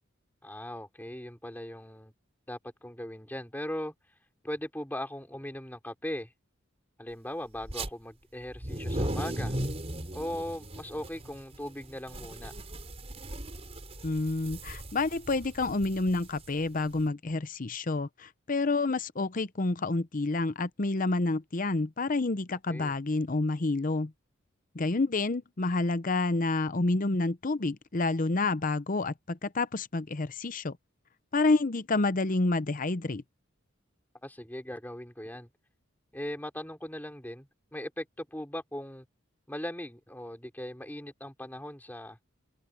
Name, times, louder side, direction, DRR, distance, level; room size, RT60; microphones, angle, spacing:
voice 1, 0.4-2.1 2.5-3.9 4.4-6.3 7.0-9.5 10.1-12.5 22.7-22.9 34.2-35.5 36.1-39.1 39.5-42.2, left 1 dB, 10° left, 4.5 m, -39 dB
sound 1, 7.6-7.9 8.5-17.0, right 1 dB, 30° right, 4.4 m, -37 dB
voice 2, 14.0-24.1 24.7-30.8 31.3-33.2, left 3 dB, 40° left, 0.8 m, -29 dB
open air
head